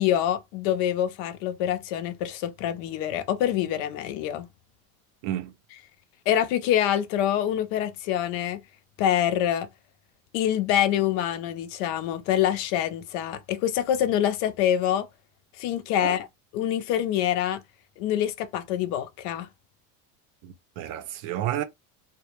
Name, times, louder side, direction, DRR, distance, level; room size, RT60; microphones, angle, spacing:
voice 1, 0.0-4.5 6.3-8.6 9.0-9.7 10.3-15.1 15.6-16.3 16.5-17.6 18.0-19.5, left 11 dB, 50° left, 0.4 m, -25 dB
voice 2, 20.4-21.6, right 12 dB, 60° right, 0.5 m, -31 dB
2.1 x 2.0 x 2.9 m
cardioid pair, 155°, 45 cm